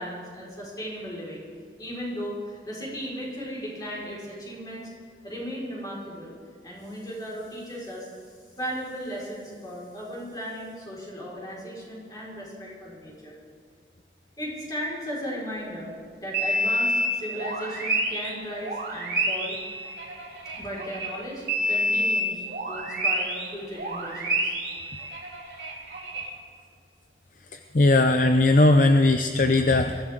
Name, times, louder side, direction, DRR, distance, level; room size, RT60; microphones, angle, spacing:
voice 1, 0.0-1.4 1.8-4.9 5.2-6.3 6.6-8.1 8.5-13.4 14.4-15.9 16.2-19.6 20.4-24.5, equal, 20° left, -5 dB, 4.9 m, -36 dB
sound 1, 16.3-21.1 21.5-23.5 23.7-26.3, equal, 65° right, 3.2 m, -28 dB
voice 2, 27.5-30.0, left 2 dB, 45° left, 7 dB, 0.6 m, -19 dB
22.0 x 15.5 x 3.7 m, 2.2 s
head